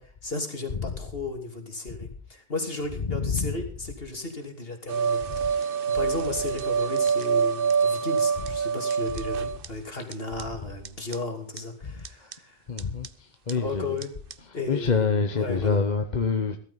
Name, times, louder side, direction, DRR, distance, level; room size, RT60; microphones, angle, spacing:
voice 1, 0.0-12.6 13.5-14.1 14.5-15.1 15.3-15.8, left 2 dB, 60° left, 3.2 m, -34 dB
voice 2, 0.7-1.0 1.9-2.1 3.0-3.6 5.3-5.5 8.4-8.6 9.9-10.1 11.8-12.3 12.7-14.0 14.4-16.6, left 5 dB, 45° left, 1.1 m, -28 dB
sound 1, 4.9-9.7 10.1-10.2 10.4-10.5 10.8-10.9 11.1-11.2 11.6-11.7 12.0-12.3 12.8-13.1 13.5-13.6 14.0-14.1 14.3-14.4, right 6 dB, 60° right, 1.0 m, -26 dB
16.0 x 13.5 x 4.0 m
omnidirectional pair, 1.1 m